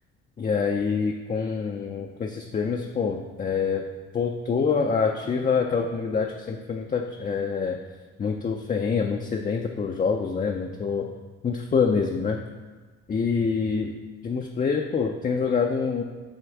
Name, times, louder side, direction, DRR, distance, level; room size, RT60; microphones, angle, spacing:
voice 1, 0.4-3.8 4.1-7.8 8.2-11.1 11.4-12.4 13.1-13.9 14.2-16.0, left 5 dB, 25° left, 2 dB, 0.5 m, -26 dB
8.0 x 3.4 x 4.6 m, 1.3 s
cardioid pair, 90°, 30 cm